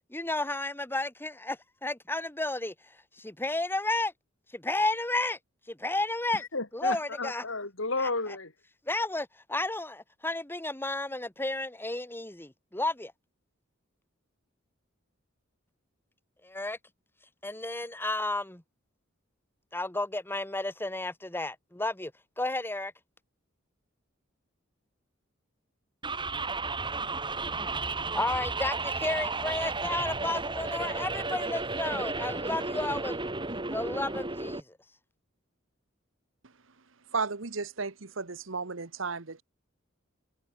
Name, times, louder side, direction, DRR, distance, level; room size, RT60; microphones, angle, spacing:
voice 1, 0.1-2.7 3.2-4.1 4.5-5.4 5.7-6.4 6.7-7.4 8.0-8.1 8.9-13.1 16.4-16.8 17.4-18.6 19.7-22.1 22.4-22.9 28.1-33.3 33.7-34.6, left 2 dB, 10° left, 1.9 m, -32 dB
voice 2, 6.3-8.5, left 3 dB, 75° left, 4.5 m, -33 dB
sound 1, 26.0-34.6, right 3 dB, 25° right, 4.5 m, -33 dB
voice 3, 37.1-39.4, right 4 dB, 70° right, 1.4 m, -34 dB
head